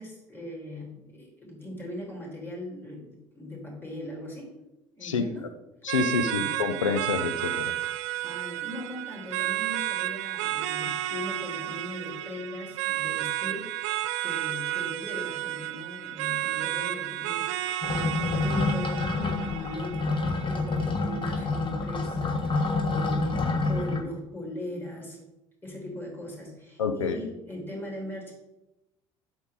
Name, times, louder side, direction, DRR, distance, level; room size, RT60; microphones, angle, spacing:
voice 1, 0.0-4.5 4.9-5.5 8.2-25.2 25.6-28.3, left 1 dB, 15° left, -2 dB, 3.2 m, -40 dB
voice 2, 5.8-7.7 26.8-27.1, left 5 dB, 85° left, 10 dB, 0.6 m, -27 dB
sound 1, 5.9-20.8, right 14 dB, 70° right, 0.4 m, -32 dB
sound 2, 17.8-24.0, left 3 dB, 30° left, 1.2 m, -27 dB
7.9 x 6.4 x 3.6 m, 0.94 s
hypercardioid pair, 60°, 16 cm